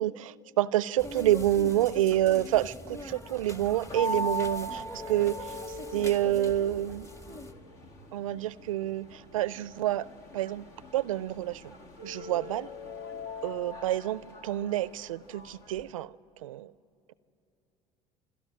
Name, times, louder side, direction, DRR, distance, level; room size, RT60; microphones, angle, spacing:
voice 1, 0.0-7.1 8.1-10.1 10.3-10.7 10.9-11.8 12.0-12.7 13.4-16.2 16.4-16.7, right 13 dB, 85° right, 0.4 m, -28 dB
sound 1, 1.0-7.5, left 1 dB, 20° left, 1.3 m, -43 dB
sound 2, 3.9-15.8, left 1 dB, 70° left, 1.7 m, -40 dB
26.5 x 12.0 x 10.0 m
hypercardioid pair, 70°, 17 cm